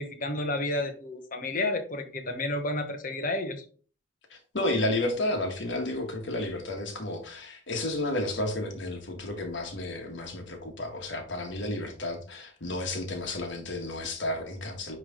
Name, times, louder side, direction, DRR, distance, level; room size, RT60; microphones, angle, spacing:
voice 1, 0.0-3.6, left 2 dB, 40° left, 1.1 m, -31 dB
voice 2, 4.3-15.0, left 1 dB, 60° left, 1.6 m, -32 dB
9.4 x 3.3 x 3.7 m
head